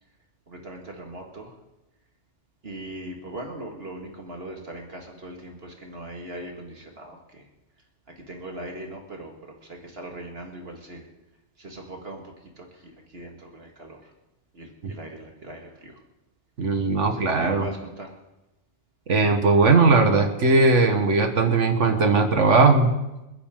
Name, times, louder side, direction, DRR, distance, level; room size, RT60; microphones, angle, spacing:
voice 1, 0.5-1.5 2.6-7.4 8.3-9.3 9.7-11.0 11.6-12.2 12.6-12.7 13.1-14.0 14.5-15.9 17.1-18.1, right 1 dB, 55° right, 1 dB, 2.2 m, -39 dB
voice 2, 16.6-17.7 19.1-22.9, right 3 dB, 85° right, 6 dB, 1.8 m, -19 dB
29.5 x 10.0 x 3.8 m, 0.98 s
omnidirectional pair, 1.2 m